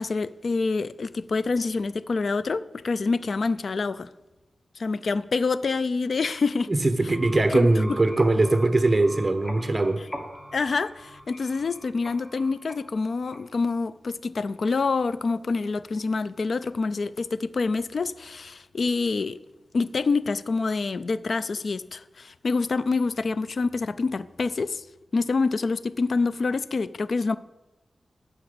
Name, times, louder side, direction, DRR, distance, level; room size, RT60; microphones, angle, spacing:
voice 1, 0.0-4.1 4.8-6.7 7.5-7.7 10.5-19.4 19.7-24.8 25.1-27.4, left 4 dB, 60° left, 15 dB, 0.4 m, -26 dB
voice 2, 6.7-10.0, right 2 dB, 25° right, 9 dB, 1.0 m, -21 dB
sound 1, 6.9-13.7, equal, 15° left, 1.4 m, -42 dB
10.0 x 6.1 x 6.8 m, 1.0 s
wide cardioid pair, 115°, 0 cm